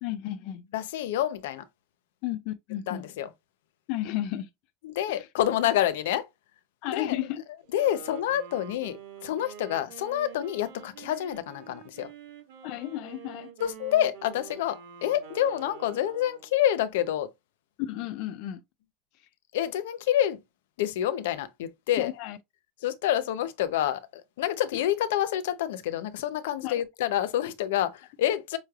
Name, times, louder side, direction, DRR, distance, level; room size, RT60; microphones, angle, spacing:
voice 1, 0.0-0.7 2.2-3.0 3.9-4.5 5.1-5.3 6.8-7.4 12.6-13.5 17.8-18.6 19.2-19.3 22.0-22.4 24.7-24.8 26.6-26.8, left 13 dB, 45° left, 0.4 m, -33 dB
voice 2, 0.7-1.6 2.9-3.3 4.8-6.3 6.8-7.2 7.7-12.1 13.6-17.3 19.5-20.4 20.8-22.1 22.8-28.6, left 11 dB, 80° left, 0.7 m, -28 dB
Wind instrument woodwind instrument, 7.6-16.6, right 8 dB, 70° right, 1.9 m, -47 dB
5.4 x 3.2 x 2.4 m
supercardioid pair, 170°, 0 cm